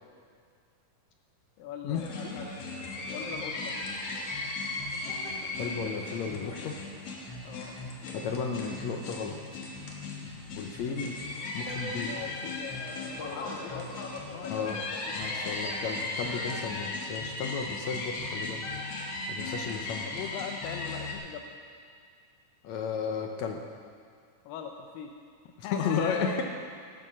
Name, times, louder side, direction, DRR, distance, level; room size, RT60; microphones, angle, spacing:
voice 1, 1.6-2.5 3.1-3.7 7.4-7.8 12.1-13.9 14.3-14.6 20.1-21.4 24.5-25.1 25.6-26.4, left 7 dB, 90° left, 4 dB, 2.4 m, -41 dB
sound 1, 1.9-21.1, left 2 dB, 55° left, 2.2 m, -37 dB
voice 2, 5.6-6.8 8.1-9.3 10.6-11.2 11.5-12.1 14.5-14.8 15.1-18.6 19.3-20.1 22.6-23.6 25.6-26.4, left 6 dB, 75° left, 3 dB, 1.8 m, -33 dB
18.0 x 8.8 x 6.1 m, 2.1 s
omnidirectional pair, 3.9 m